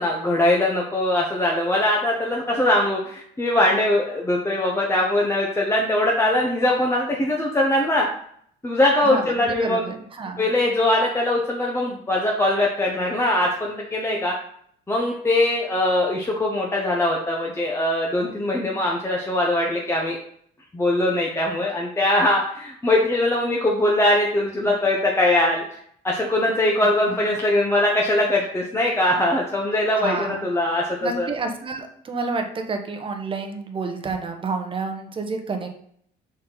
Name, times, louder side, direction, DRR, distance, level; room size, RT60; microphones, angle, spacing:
voice 1, 0.0-8.1 8.6-9.9 10.4-14.3 14.9-20.2 20.7-25.6 26.0-31.3, left 1 dB, 15° left, -2 dB, 0.9 m, -21 dB
voice 2, 9.0-10.5 24.6-24.7 27.1-27.2 30.0-30.4 31.0-35.7, right 4 dB, 30° right, 5 dB, 1.0 m, -29 dB
6.2 x 4.3 x 3.9 m, 0.65 s
cardioid pair, 110°, 17 cm